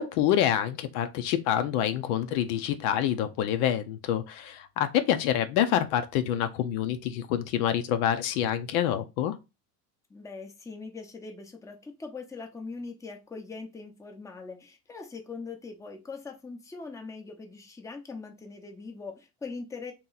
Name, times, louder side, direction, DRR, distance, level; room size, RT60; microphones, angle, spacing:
voice 1, 0.0-9.4, left 10 dB, 75° left, 0.7 m, -27 dB
voice 2, 10.1-19.9, left 4 dB, 5° left, 0.7 m, -41 dB
3.0 x 2.9 x 3.9 m
supercardioid pair, 120°, 44 cm